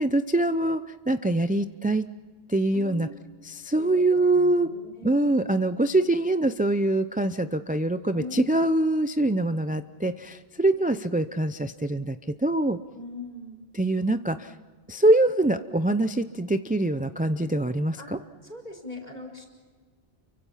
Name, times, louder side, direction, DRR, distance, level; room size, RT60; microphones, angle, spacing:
voice 1, 0.0-2.0 2.5-3.1 3.5-4.7 5.0-12.8 13.7-14.5 14.9-18.2, right 2 dB, 10° right, 10 dB, 0.4 m, -24 dB
voice 2, 2.7-3.1 3.8-5.1 8.1-8.5 12.9-13.6 18.0-18.1 18.4-19.5, left 2 dB, 45° left, 2 dB, 4.7 m, -40 dB
29.5 x 24.0 x 5.7 m, 1.5 s
omnidirectional pair, 1.1 m